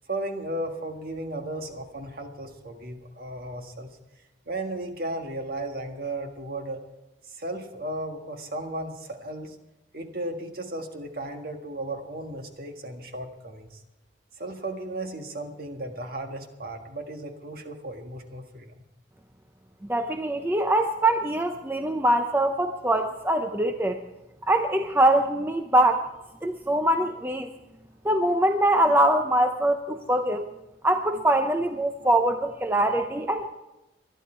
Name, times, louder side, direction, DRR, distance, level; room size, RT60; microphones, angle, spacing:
voice 1, 0.1-3.9 4.4-6.8 7.2-9.6 9.9-13.8 14.4-18.8 32.0-32.1 32.4-32.5 32.8-33.1 33.4-33.5, right 1 dB, 50° right, 4 dB, 1.7 m, -35 dB
voice 2, 19.9-24.0 24.5-26.0 26.4-27.5 28.0-30.5 30.8-33.5, right 1 dB, 10° right, 6 dB, 0.6 m, -23 dB
21.0 x 12.0 x 4.5 m, 0.96 s
head